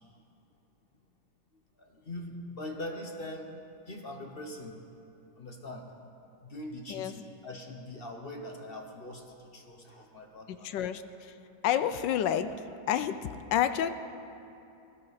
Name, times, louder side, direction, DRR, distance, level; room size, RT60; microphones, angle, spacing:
voice 1, 1.8-3.5 3.9-4.8 5.4-5.9 6.4-10.7, left 1 dB, 40° left, 2 dB, 0.9 m, -42 dB
voice 2, 10.5-11.3 11.6-12.5 12.9-13.2 13.5-13.9, left 10 dB, 75° left, 11 dB, 1.2 m, -29 dB
19.5 x 14.0 x 4.1 m, 2.7 s
omnidirectional pair, 2.1 m